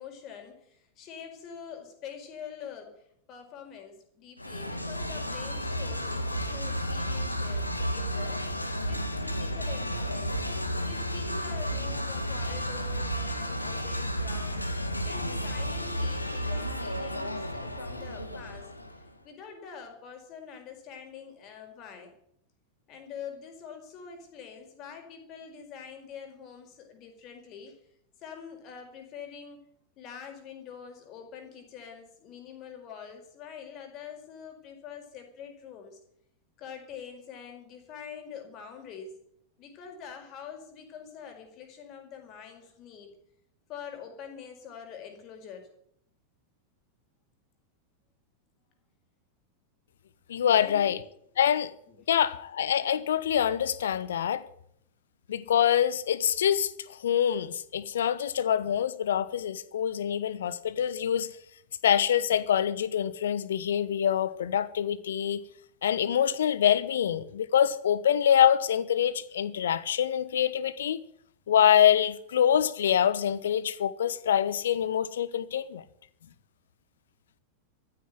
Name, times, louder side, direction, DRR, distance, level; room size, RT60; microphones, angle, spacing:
voice 1, 0.0-2.9 3.3-8.4 8.8-10.4 10.8-14.7 15.0-18.7 19.2-22.1 22.9-27.8 28.2-29.6 30.0-36.0 36.6-39.1 39.6-43.1 43.7-45.7 50.5-50.9 51.4-51.5 51.9-52.0, left 7 dB, 35° left, 4.8 m, -45 dB
sound 1, 4.4-19.1, equal, 85° left, 1.7 m, -32 dB
voice 2, 50.3-51.0 51.4-51.7 52.1-54.5 55.3-61.4 61.8-65.4 65.8-71.0 71.5-75.8, left 9 dB, 65° left, 1.0 m, -25 dB
14.0 x 9.8 x 9.5 m
figure-of-eight pair, 90°, 0 cm